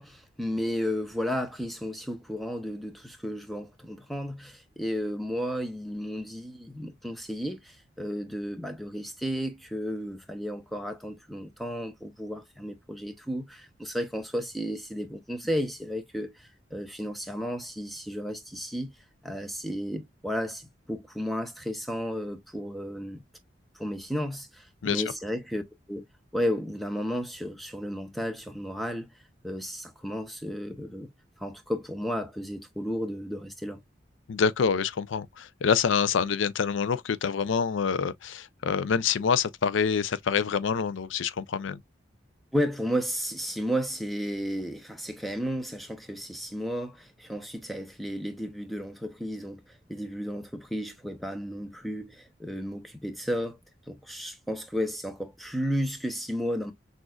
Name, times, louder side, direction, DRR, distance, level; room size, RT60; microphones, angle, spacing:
voice 1, 0.0-18.9 19.2-23.2 23.7-25.6 25.9-26.1 26.3-29.1 29.4-31.1 31.4-33.8 42.5-53.6 53.9-56.7, equal, ahead, 0.7 m, -33 dB
voice 2, 34.3-41.8, left 6 dB, 80° left, 0.4 m, -26 dB
6.1 x 2.5 x 2.3 m
head